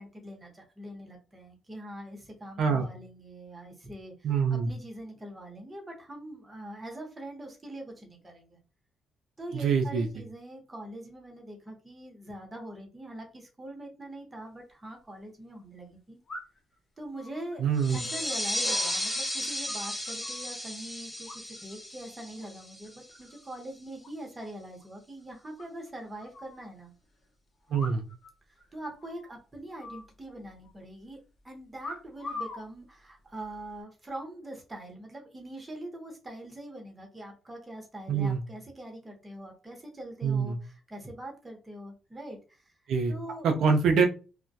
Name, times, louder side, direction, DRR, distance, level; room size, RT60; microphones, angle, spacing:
voice 1, 0.0-8.6 9.4-16.2 17.0-17.6 17.9-26.9 28.7-31.2 31.4-42.7 43.1-43.6, right 1 dB, 20° right, 1 dB, 0.9 m, -43 dB
voice 2, 4.2-4.7 9.5-10.1 17.6-18.0 27.7-28.0 38.1-38.4 40.2-40.6 42.9-43.1 43.4-44.1, right 5 dB, 75° right, 4 dB, 0.4 m, -25 dB
sound 1, 14.5-14.6 16.3-16.7 17.1-19.2 19.4-20.5 21.3-21.8 22.1-22.5 22.8-23.4 23.7-23.8 24.0-24.1 24.4-24.5 24.8-24.9 25.6-26.6 27.7-28.3 28.6-28.7 29.0-29.3 29.8-30.7 31.8-32.7 33.4-33.8, left 3 dB, 40° left, 0.9 m, -43 dB
sound 2, 17.8-23.1, left 1 dB, 10° left, 0.8 m, -34 dB
2.2 x 2.1 x 2.6 m, 0.34 s
cardioid pair, 90°, 0 cm